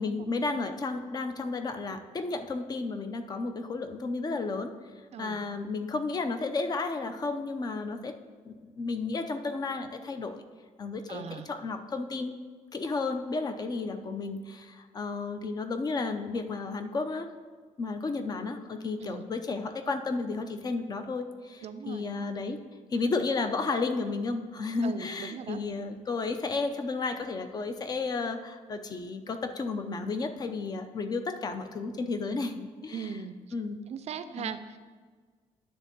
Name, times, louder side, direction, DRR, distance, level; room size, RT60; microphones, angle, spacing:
voice 1, 0.0-4.7 5.2-8.1 8.5-10.4 10.8-12.4 12.7-17.3 17.8-22.6 22.9-33.1 33.5-33.8 34.4-34.6, left 3 dB, 30° left, 8 dB, 0.6 m, -32 dB
voice 2, 5.1-5.4 11.1-11.5 19.0-19.2 21.6-22.1 24.8-25.6 32.9-33.4 33.9-34.8, right 7 dB, 50° right, 11 dB, 0.5 m, -39 dB
9.7 x 3.6 x 6.7 m, 1.5 s
cardioid pair, 160°, 14 cm